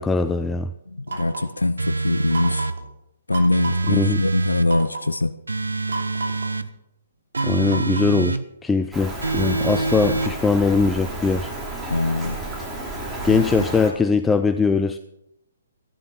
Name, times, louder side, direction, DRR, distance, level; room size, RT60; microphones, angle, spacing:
voice 1, 0.0-0.7 3.9-4.2 7.4-11.5 13.2-15.0, left 4 dB, 10° left, 9 dB, 0.5 m, -21 dB
voice 2, 0.9-2.7 3.3-5.3 11.9-12.4 13.3-13.5, left 2 dB, 80° left, 12 dB, 0.6 m, -22 dB
sound 1, 1.1-1.6 2.3-2.8 3.3-3.9 4.7-5.1 5.9-6.6 7.3-8.2, right 3 dB, 65° right, 2.8 m, -32 dB
sound 2, 1.8-2.8 3.5-4.7 5.5-6.7 7.3-8.4 9.2-10.3, right 3 dB, 80° right, 0.9 m, -25 dB
Rain, 8.9-13.9, right 1 dB, 10° right, 3.0 m, -32 dB
14.5 x 11.0 x 5.8 m, 0.83 s
figure-of-eight pair, 130°, 0 cm